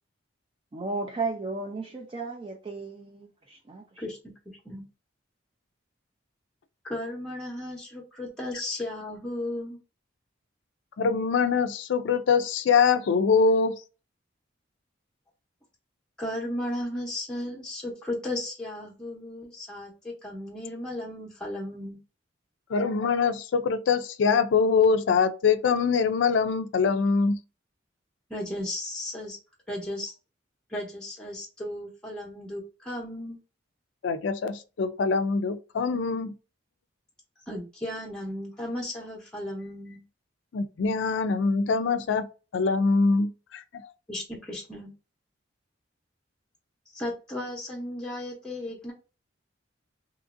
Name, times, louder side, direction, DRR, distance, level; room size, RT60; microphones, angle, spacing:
voice 1, 0.7-4.1, right 3 dB, 30° right, 0.4 m, -34 dB
voice 2, 4.5-4.8 6.8-9.8 16.2-22.0 28.3-29.4 29.7-30.1 30.7-33.4 37.5-40.0 44.1-44.9 46.9-48.9, left 1 dB, 5° left, 0.7 m, -35 dB
voice 3, 11.0-13.8 22.7-27.4 34.0-36.3 40.5-42.3 42.5-43.9, left 5 dB, 70° left, 0.4 m, -24 dB
2.9 x 2.5 x 2.5 m
head